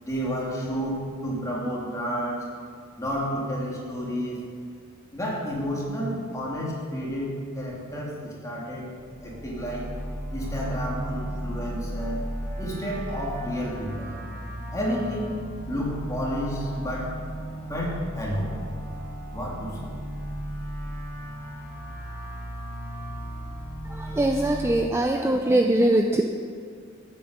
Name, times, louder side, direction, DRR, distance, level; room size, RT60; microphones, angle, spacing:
voice 1, 0.0-2.5 3.0-4.4 5.1-8.9 9.2-9.9 10.3-12.2 12.6-14.2 14.7-15.4 15.7-17.1 17.7-18.5 19.3-19.9, equal, 15° left, -4 dB, 3.0 m, -30 dB
sound 1, 8.9-24.8, equal, 45° right, 3.4 m, -35 dB
voice 2, 23.8-26.2, right 1 dB, 10° right, 4 dB, 0.5 m, -22 dB
12.5 x 9.0 x 6.7 m, 2.1 s
head